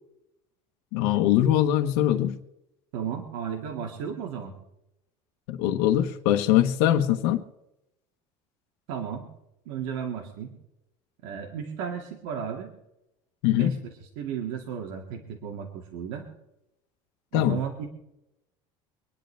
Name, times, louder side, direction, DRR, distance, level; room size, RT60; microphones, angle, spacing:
voice 1, 0.9-2.4 5.5-7.4 13.4-13.7 17.3-17.6, left 12 dB, 75° left, 6 dB, 1.3 m, -22 dB
voice 2, 2.9-4.6 8.9-9.3 9.7-10.5 11.2-12.7 13.6-16.3 17.3-17.9, right 7 dB, 75° right, 2 dB, 2.2 m, -34 dB
25.5 x 10.5 x 3.4 m, 0.87 s
cardioid pair, 175°, 13 cm